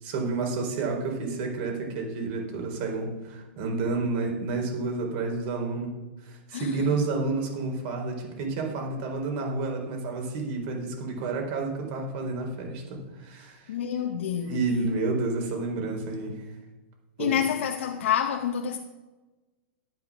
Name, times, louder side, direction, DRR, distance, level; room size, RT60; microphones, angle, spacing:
voice 1, 0.0-5.9 6.2-13.7 14.4-16.3 17.2-17.3, right 3 dB, 50° right, 4.0 m, -30 dB
voice 2, 6.5-7.0 13.7-14.5 17.2-18.8, left 8 dB, 75° left, 1.1 m, -28 dB
11.0 x 8.6 x 6.3 m
hypercardioid pair, 140°, 7 cm